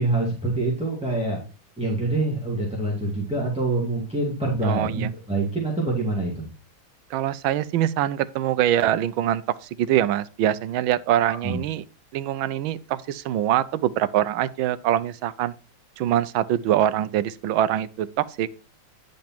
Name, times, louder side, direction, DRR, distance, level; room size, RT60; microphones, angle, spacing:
voice 1, 0.0-1.4 1.8-6.5 11.2-11.6, right 2 dB, 5° right, 2.3 m, -25 dB
voice 2, 4.6-5.1 7.1-11.8 12.1-15.5 16.0-18.5, right 12 dB, 80° right, 1.3 m, -24 dB
10.5 x 5.3 x 4.4 m
omnidirectional pair, 2.3 m